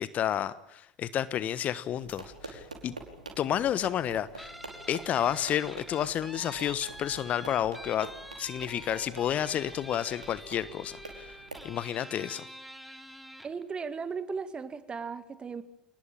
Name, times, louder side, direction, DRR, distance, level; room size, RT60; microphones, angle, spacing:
voice 1, 0.0-2.9 3.4-4.5 4.9-8.1 8.4-11.3 11.6-12.4, left 10 dB, 40° left, 1.2 m, -30 dB
sound 1, 2.0-11.7, right 3 dB, 80° right, 5.0 m, -47 dB
Guitar, 4.4-13.6, equal, ahead, 2.9 m, -46 dB
voice 2, 13.4-15.6, right 5 dB, 25° right, 2.2 m, -36 dB
27.5 x 20.0 x 9.2 m
figure-of-eight pair, 70°, 4 cm